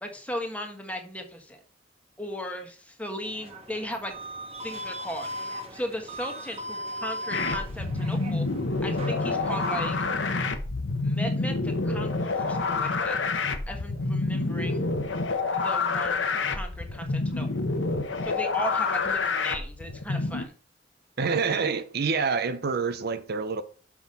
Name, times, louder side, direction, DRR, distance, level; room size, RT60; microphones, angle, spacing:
voice 1, 0.0-1.6 2.2-4.1 4.6-8.5 8.8-9.9 11.0-13.1 13.7-14.8 15.5-17.5 18.2-20.5, equal, 10° left, 1.5 m, -36 dB
sound 1, 3.2-9.9, equal, 35° right, 1.5 m, -38 dB
sound 2, 7.3-20.4, left 3 dB, 80° left, 1.1 m, -28 dB
voice 2, 21.2-23.6, right 5 dB, 55° right, 0.6 m, -27 dB
6.1 x 6.0 x 5.3 m
head